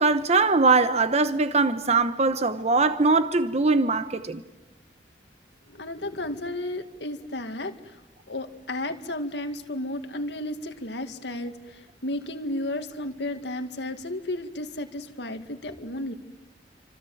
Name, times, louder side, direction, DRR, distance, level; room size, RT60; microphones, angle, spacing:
voice 1, 0.0-4.4, right 3 dB, 40° right, 1.0 m, -21 dB
voice 2, 5.7-8.0 8.3-16.1, left 1 dB, 75° left, 2.2 m, -33 dB
28.5 x 25.5 x 7.9 m
head